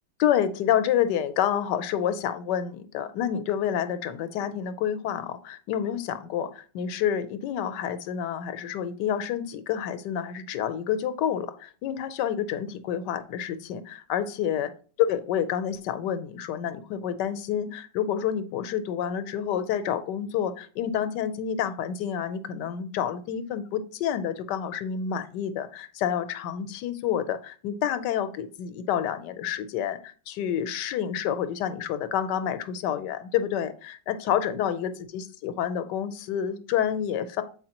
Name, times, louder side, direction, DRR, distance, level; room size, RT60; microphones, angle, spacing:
voice 1, 0.2-14.7 15.1-37.4, left 9 dB, 80° left, 11 dB, 1.2 m, -29 dB
7.7 x 4.8 x 2.9 m, 0.41 s
omnidirectional pair, 1.9 m